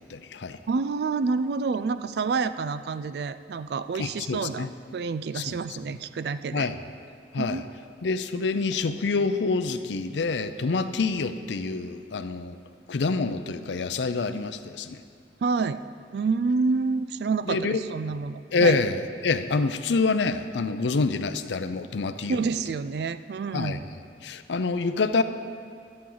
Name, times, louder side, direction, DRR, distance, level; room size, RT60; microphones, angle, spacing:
voice 1, 0.0-0.6 4.0-4.7 5.3-5.8 6.5-6.8 7.3-7.6 8.0-12.6 12.9-15.0 17.5-17.8 18.5-22.5 23.5-23.8 24.2-25.2, left 4 dB, 80° left, 10 dB, 0.5 m, -27 dB
voice 2, 0.7-6.7 7.4-7.6 15.4-15.8 16.1-18.8 22.3-23.8, right 4 dB, 65° right, 13 dB, 0.3 m, -28 dB
13.0 x 11.0 x 3.9 m, 2.2 s
head